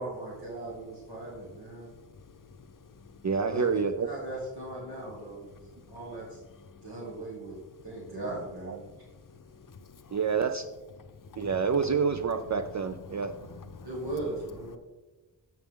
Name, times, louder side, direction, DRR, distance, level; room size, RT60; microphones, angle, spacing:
voice 1, 0.0-1.9 3.5-3.7 4.1-5.5 5.9-6.4 6.8-8.8 13.8-14.8, right 2 dB, 65° right, -6 dB, 2.6 m, -38 dB
voice 2, 3.2-4.1 8.7-8.8 10.1-10.7 11.4-13.3, right 5 dB, 45° right, 8 dB, 0.5 m, -28 dB
voice 3, 9.7-10.2 11.2-11.6 12.4-12.5 13.0-13.9, left 5 dB, 50° left, 10 dB, 0.7 m, -47 dB
14.0 x 5.9 x 3.7 m, 1.2 s
wide cardioid pair, 95°, 41 cm